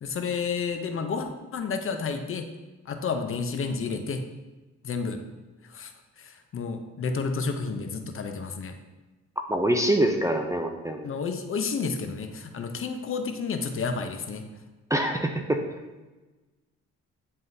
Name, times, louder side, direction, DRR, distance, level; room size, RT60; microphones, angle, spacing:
voice 1, 0.0-2.4 2.9-4.2 4.8-5.2 5.7-5.9 6.2-8.8 11.0-14.4, left 5 dB, 45° left, 6 dB, 0.7 m, -31 dB
voice 2, 9.5-11.1 14.9-15.6, right 1 dB, 10° right, 4 dB, 0.5 m, -25 dB
9.5 x 3.7 x 2.7 m, 1.2 s
cardioid pair, 90°, 30 cm